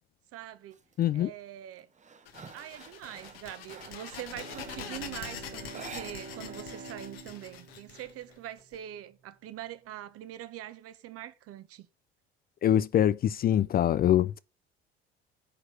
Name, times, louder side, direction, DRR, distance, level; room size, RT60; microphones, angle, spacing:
voice 1, 0.3-0.8 1.1-1.9 2.5-11.9, right 12 dB, 50° right, 1.2 m, -43 dB
sound 1, 0.7-1.1 1.5-4.9 5.7-6.6 6.9-7.0 7.4-8.3, right 5 dB, 25° right, 1.1 m, -49 dB
voice 2, 1.0-1.3 12.6-14.4, left 11 dB, 30° left, 0.4 m, -24 dB
sound 2, 2.3-8.8, left 8 dB, 70° left, 1.6 m, -44 dB
Bowed string instrument, 4.2-9.1, right 4 dB, 75° right, 3.2 m, -47 dB
10.0 x 4.7 x 6.5 m
figure-of-eight pair, 55°, 31 cm